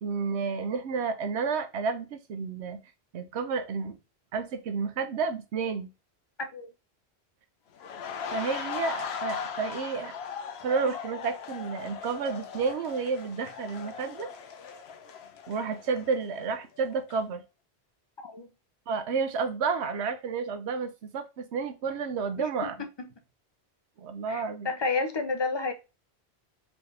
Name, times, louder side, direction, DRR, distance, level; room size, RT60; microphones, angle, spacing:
voice 1, 0.0-2.8 3.1-4.0 4.3-5.9 8.3-10.1 10.6-14.3 15.5-17.4 18.9-22.8 24.0-24.7, right 5 dB, 85° right, 0.9 m, -31 dB
sound 1, 7.8-16.6 16.9-17.1, left 7 dB, 75° left, 0.9 m, -39 dB
voice 2, 22.4-22.7 23.0-23.1 24.3-25.7, left 3 dB, 35° left, 0.5 m, -31 dB
4.4 x 2.8 x 3.2 m
omnidirectional pair, 1.1 m